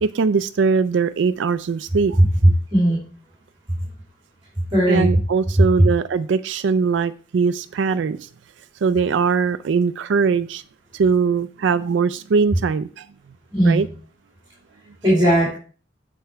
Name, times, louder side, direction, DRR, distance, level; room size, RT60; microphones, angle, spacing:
voice 1, 0.0-2.2 4.9-8.3 8.8-10.6 10.9-13.1 13.6-13.9, right 5 dB, 75° right, 0.4 m, -21 dB
voice 2, 2.7-3.1 4.7-5.1 13.5-13.8 15.0-15.6, right 1 dB, 25° right, 2.7 m, -17 dB
8.6 x 4.5 x 5.6 m
head